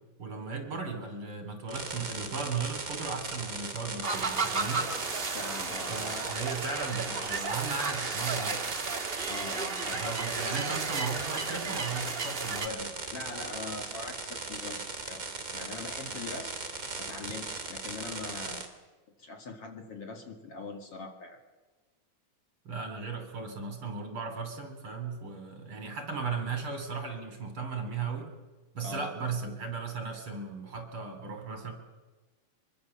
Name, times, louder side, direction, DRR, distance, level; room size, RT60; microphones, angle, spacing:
voice 1, 0.2-4.9 5.9-8.7 9.9-12.9 22.7-28.3 28.7-31.7, right 4 dB, 45° right, 6 dB, 3.8 m, -36 dB
sound 1, 1.7-18.7, right 3 dB, 30° right, 2.9 m, -38 dB
sound 2, 4.0-12.7, right 4 dB, 85° right, 0.5 m, -34 dB
voice 2, 5.3-6.1 9.3-10.0 13.1-15.2 15.5-16.5 17.0-18.7 19.2-21.4 28.8-29.1, left 3 dB, 50° left, 4 dB, 3.1 m, -42 dB
24.0 x 23.5 x 7.2 m, 1.2 s
omnidirectional pair, 3.5 m